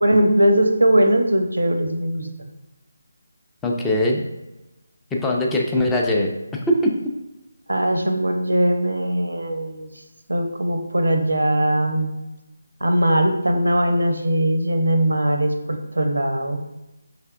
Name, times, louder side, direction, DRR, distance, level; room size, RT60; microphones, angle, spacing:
voice 1, 0.0-2.5 7.7-9.9 10.3-12.1 12.8-16.6, right 1 dB, 75° right, 5 dB, 0.6 m, -20 dB
voice 2, 3.6-4.2 5.1-6.3 6.7-6.9, left 1 dB, 10° left, -1 dB, 0.4 m, -20 dB
5.4 x 3.4 x 2.4 m, 0.98 s
figure-of-eight pair, 155°, 0 cm